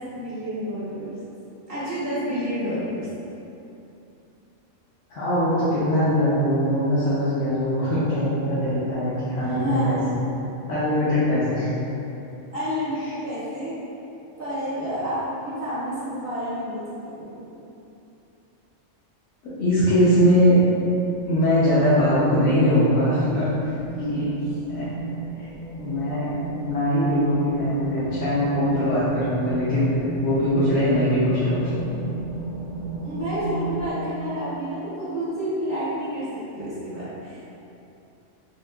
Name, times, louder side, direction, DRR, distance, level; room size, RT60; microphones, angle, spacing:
voice 1, 0.1-1.2 1.7-3.1 9.4-10.1 12.5-13.7 14.4-17.6 23.9-24.2 33.0-37.4, equal, 50° right, -10 dB, 0.9 m, -30 dB
voice 2, 5.1-10.2 10.7-11.7 19.4-20.6 21.3-23.7 24.1-24.4 24.7-24.9 25.4-25.5 25.8-26.3 26.6-29.9 30.2-31.8, equal, 75° left, -12 dB, 1.0 m, -21 dB
sound 1, 19.6-33.9, right 3 dB, 45° left, 0.5 m, -35 dB
3.6 x 2.6 x 2.3 m, 2.9 s
omnidirectional pair, 1.3 m